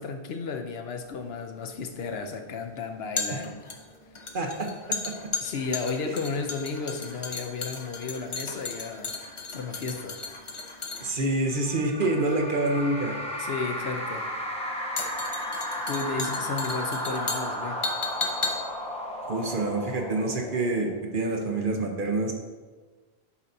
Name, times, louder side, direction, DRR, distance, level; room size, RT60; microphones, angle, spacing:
voice 1, 0.0-3.6 5.4-9.1 9.5-10.2 13.4-14.3 15.9-17.8, left 4 dB, 70° left, 5 dB, 0.9 m, -33 dB
sound 1, 1.0-20.3 20.5-20.7, left 4 dB, 35° left, 0.6 m, -36 dB
voice 2, 4.3-4.7 6.0-6.1 11.0-13.2 19.3-22.3, right 2 dB, 55° right, 2 dB, 1.0 m, -27 dB
sound 2, 11.5-21.2, equal, 5° left, 0.8 m, -34 dB
8.4 x 5.7 x 2.7 m, 1.3 s
omnidirectional pair, 1.1 m